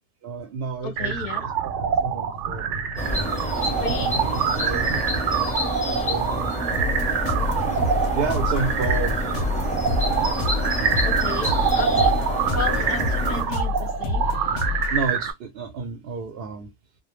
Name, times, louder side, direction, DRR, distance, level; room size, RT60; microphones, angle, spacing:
voice 1, 0.2-2.9 3.6-4.3 4.5-5.0 5.9-9.2 9.6-9.9 14.9-16.7, right 5 dB, 65° right, 0.7 m, -32 dB
voice 2, 0.8-1.5 3.6-4.2 11.0-12.2 12.5-14.3, left 4 dB, 50° left, 0.6 m, -33 dB
sound 1, 1.0-15.3, right 7 dB, 90° right, 0.9 m, -26 dB
sound 2, 3.0-13.4, equal, 10° left, 0.7 m, -28 dB
sound 3, 6.7-15.1, left 3 dB, 85° left, 0.9 m, -28 dB
2.2 x 2.1 x 3.0 m
omnidirectional pair, 1.2 m